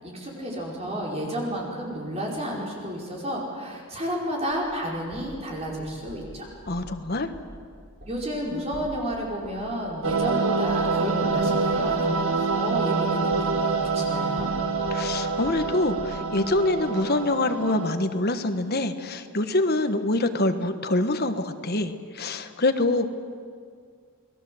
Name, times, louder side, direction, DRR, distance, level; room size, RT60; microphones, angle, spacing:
voice 1, 0.0-6.5 8.1-14.5, equal, 30° right, -2 dB, 5.3 m, -31 dB
sound 1, 4.5-6.3 6.7-6.9 7.3-7.5 7.8-14.1 14.4-16.6, equal, 45° right, 5.5 m, -46 dB
voice 2, 6.7-7.3 14.9-23.2, left 2 dB, 45° left, 8 dB, 1.4 m, -25 dB
sound 2, 10.0-18.0, right 4 dB, 65° right, 1.7 m, -26 dB
29.5 x 20.0 x 7.9 m, 2.2 s
head